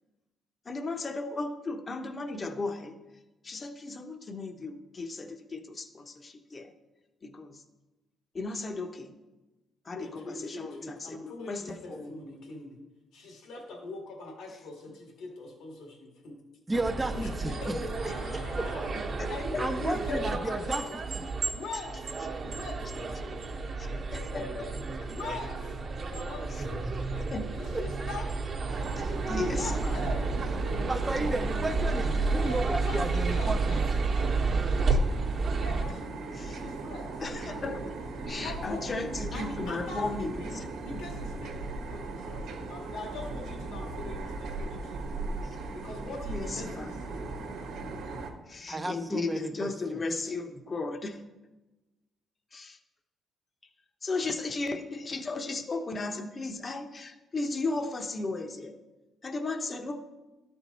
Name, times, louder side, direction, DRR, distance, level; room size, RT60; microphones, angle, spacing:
voice 1, 0.6-3.0 3.4-6.7 7.2-7.6 8.3-9.1 9.8-12.1 14.5-14.6 18.1-18.2 18.9-20.2 23.5-25.1 26.5-26.6 27.1-27.7 28.8-30.0 34.2-34.3 34.9-35.0 35.4-35.6 36.3-36.6 37.2-38.0 38.3-40.7 40.9-41.0 45.4-45.6 46.3-46.9 48.5-51.3 52.5-52.8 54.0-58.8 59.2-60.0, left 3 dB, 35° left, 7 dB, 0.8 m, -36 dB
voice 2, 9.9-12.8 13.1-16.4 17.1-18.9 19.2-21.0 21.5-22.1 22.4-24.3 25.1-25.7 26.1-26.9 27.5-28.3 29.4-31.8 32.3-33.8 34.1-34.9 35.6-36.2 36.5-37.1 38.3-38.8 39.3-41.5 41.9-45.2 45.7-47.2, left 2 dB, 85° left, 0 dB, 1.9 m, -42 dB
voice 3, 16.7-17.8 18.6-18.7 19.6-20.8 21.2-21.3 27.7-28.1 30.9-33.8 48.7-50.0, right 2 dB, 15° right, 6 dB, 0.5 m, -33 dB
sound 1, 16.7-35.8, right 3 dB, 50° right, 1.1 m, -31 dB
sound 2, 28.7-48.3, right 3 dB, 85° right, 1.1 m, -38 dB
12.5 x 4.5 x 4.1 m, 1.1 s
cardioid pair, 90°, 0 cm